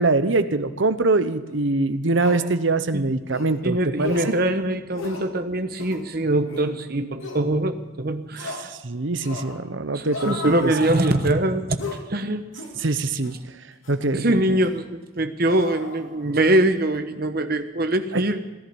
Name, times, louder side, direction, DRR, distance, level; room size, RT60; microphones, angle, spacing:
voice 1, 0.0-4.3 8.6-10.7 12.8-13.3 13.9-14.4 18.1-18.2, right 3 dB, 70° right, 11 dB, 0.9 m, -23 dB
sound 1, 1.5-1.6 2.2-2.5 3.3-3.5 4.0-4.4 4.9-5.3 5.7-6.0 6.5-6.7 7.2-7.4 8.4-8.7 9.2-9.6 10.1-11.4 11.8-12.1 12.5-12.8 13.2-13.4 13.8-14.0 14.6-14.8 15.4-16.5 16.8-17.0, left 3 dB, 85° left, 2.6 m, -35 dB
voice 2, 3.6-8.7 9.9-12.4 14.1-18.4, right 1 dB, 45° right, 8 dB, 1.1 m, -23 dB
16.5 x 11.0 x 7.0 m, 1.3 s
head